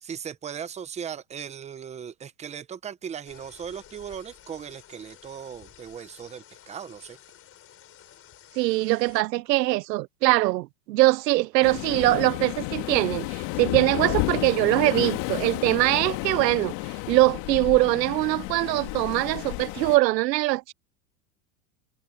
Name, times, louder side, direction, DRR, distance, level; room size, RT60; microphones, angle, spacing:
voice 1, 0.0-7.2, right 8 dB, 15° right, 0.9 m, -38 dB
sound 1, 3.2-9.2, left 10 dB, 30° left, 6.1 m, -52 dB
voice 2, 8.6-20.7, right 19 dB, 80° right, 0.7 m, -22 dB
Waves surf, 11.6-20.0, left 22 dB, 45° left, 2.1 m, -31 dB
supercardioid pair, 145°, 48 cm